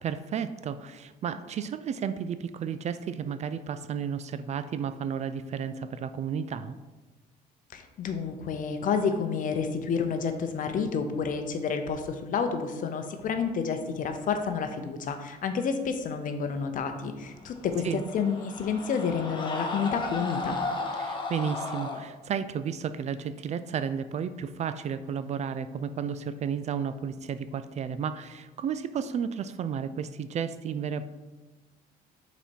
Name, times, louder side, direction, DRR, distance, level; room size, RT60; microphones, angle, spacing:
voice 1, 0.0-6.7 17.8-18.0 21.0-31.1, right 7 dB, 40° right, 12 dB, 0.4 m, -32 dB
voice 2, 7.7-20.6, left 6 dB, 50° left, 7 dB, 0.7 m, -29 dB
Screaming, 17.5-22.0, left 3 dB, 30° left, 0.9 m, -34 dB
5.6 x 4.2 x 4.5 m, 1.2 s
cardioid pair, 110°, 17 cm